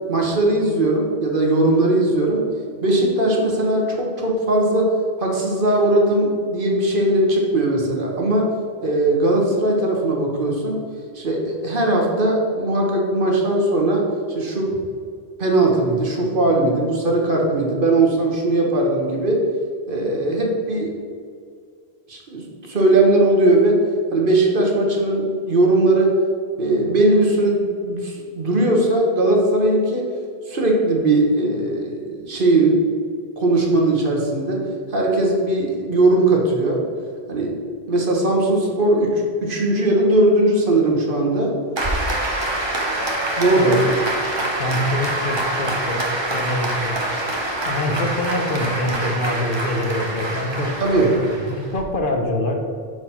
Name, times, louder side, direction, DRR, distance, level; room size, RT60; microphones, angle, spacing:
voice 1, 0.1-2.5 2.8-8.5 8.8-10.8 11.1-14.8 15.4-19.5 19.9-21.0 22.1-23.8 24.1-26.2 26.6-30.0 30.5-32.9 33.4-36.8 37.3-37.6 37.9-41.6 43.4-43.7 50.8-51.2, right 2 dB, 55° right, 0 dB, 1.3 m, -19 dB
Applause, 41.8-51.8, right 1 dB, 25° right, 1.0 m, -25 dB
voice 2, 44.6-47.0 47.6-52.7, left 1 dB, 55° left, 2 dB, 1.0 m, -25 dB
6.1 x 4.8 x 5.7 m, 2.2 s
omnidirectional pair, 1.1 m